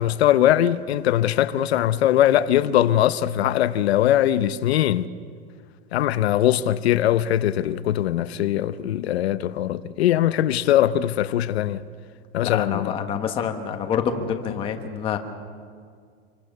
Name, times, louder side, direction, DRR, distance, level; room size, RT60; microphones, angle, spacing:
voice 1, 0.0-5.0 5.9-11.8 12.3-12.9, left 12 dB, 75° left, 0.9 m, -21 dB
voice 2, 12.4-15.2, left 7 dB, 15° left, 1.4 m, -27 dB
27.0 x 23.5 x 6.8 m
supercardioid pair, 180°, 32 cm